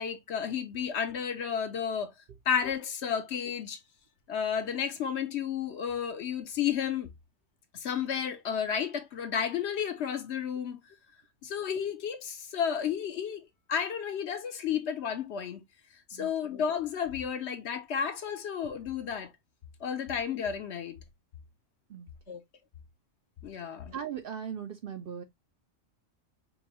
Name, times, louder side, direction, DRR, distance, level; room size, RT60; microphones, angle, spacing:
voice 1, 0.0-2.1 2.5-3.8 4.3-7.1 7.8-10.8 11.4-13.4 13.7-15.6 16.1-19.3 19.8-21.0 22.3-22.4 23.4-24.0, left 7 dB, 65° left, 0.9 m, -32 dB
voice 2, 23.9-25.2, right 8 dB, 60° right, 0.7 m, -38 dB
5.3 x 2.3 x 2.8 m
omnidirectional pair, 1.3 m